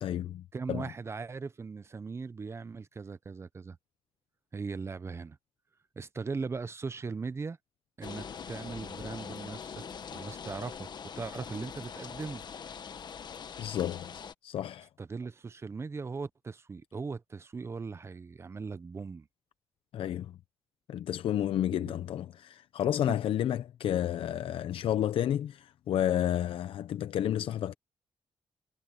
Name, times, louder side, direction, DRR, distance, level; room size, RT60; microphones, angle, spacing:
voice 1, 0.0-0.9 13.6-14.1 14.4-14.9 19.9-20.4 20.9-27.7, left 11 dB, 80° left, 0.7 m, -31 dB
voice 2, 0.5-3.8 4.5-5.4 6.0-7.6 8.0-9.8 10.1-10.9 11.2-12.4 15.0-19.3 21.8-22.0, right 4 dB, 30° right, 0.7 m, -39 dB
sound 1, 8.0-14.3, left 7 dB, 50° left, 1.3 m, -43 dB
cardioid pair, 115°, 9 cm